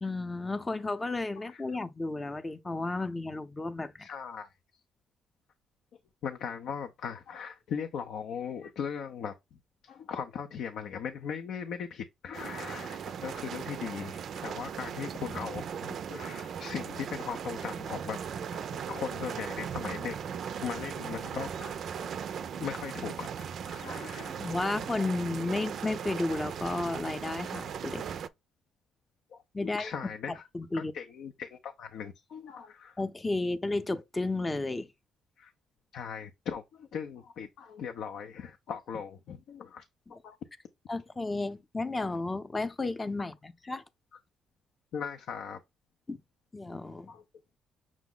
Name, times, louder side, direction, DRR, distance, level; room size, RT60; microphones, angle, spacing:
voice 1, 0.0-4.1 24.4-28.0 29.5-29.9 30.5-30.9 33.0-34.9 40.9-43.8 46.1-46.2 46.5-47.1, left 2 dB, 20° left, 0.6 m, -33 dB
voice 2, 4.0-4.5 6.2-9.4 9.8-18.2 18.5-20.2 20.6-22.1 22.4-24.5 29.3-30.4 30.7-33.0 35.4-35.5 35.9-39.8 40.1-40.4 44.9-45.6 47.1-47.2, left 7 dB, 75° left, 0.5 m, -39 dB
sound 1, 12.3-28.3, right 7 dB, 65° right, 0.4 m, -38 dB
6.1 x 2.1 x 3.7 m
cardioid pair, 90°, 0 cm